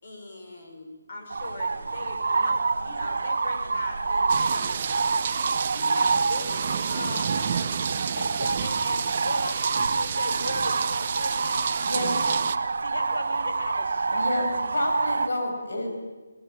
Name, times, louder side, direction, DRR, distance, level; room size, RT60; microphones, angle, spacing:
voice 1, 0.0-4.8 5.7-7.9 14.4-14.6, left 2 dB, 35° left, 2 dB, 5.7 m, -41 dB
sound 1, 1.3-15.3, right 4 dB, 55° right, 1.1 m, -27 dB
sound 2, 4.3-12.6, right 7 dB, 25° right, 0.8 m, -31 dB
voice 2, 6.9-7.3 8.1-11.7 12.8-14.6, left 2 dB, 60° left, 6 dB, 4.4 m, -37 dB
voice 3, 11.8-12.3 14.1-15.9, left 1 dB, 85° left, 2 dB, 7.5 m, -29 dB
23.5 x 20.5 x 9.1 m, 1.3 s
hypercardioid pair, 175°, 0 cm